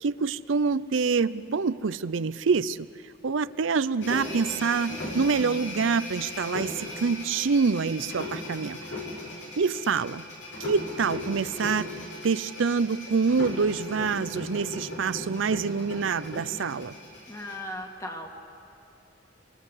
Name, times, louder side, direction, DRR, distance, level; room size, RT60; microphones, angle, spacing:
voice 1, 0.0-2.9 3.2-8.8 9.6-10.2 10.6-11.9 12.2-16.9, right 5 dB, 90° right, 15 dB, 0.5 m, -26 dB
sound 1, 4.0-17.6, left 1 dB, 85° left, 7.5 m, -37 dB
voice 2, 17.3-18.3, left 1 dB, 15° left, 3 dB, 1.9 m, -37 dB
28.5 x 23.5 x 8.2 m, 2.6 s
head